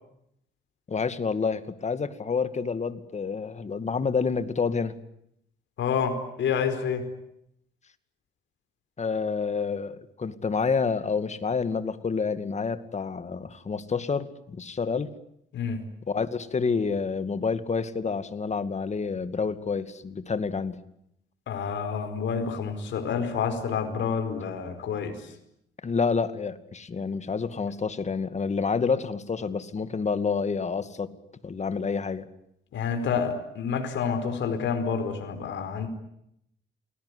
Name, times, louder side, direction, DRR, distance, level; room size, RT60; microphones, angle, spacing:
voice 1, 0.9-4.9 9.0-15.1 16.1-20.8 25.8-31.1 31.4-32.3, left 5 dB, 35° left, 12 dB, 2.3 m, -28 dB
voice 2, 5.8-7.1 15.5-15.8 21.5-25.2 32.7-35.9, left 6 dB, 70° left, 7 dB, 4.8 m, -28 dB
29.0 x 19.5 x 9.9 m, 0.77 s
cardioid pair, 90°, 20 cm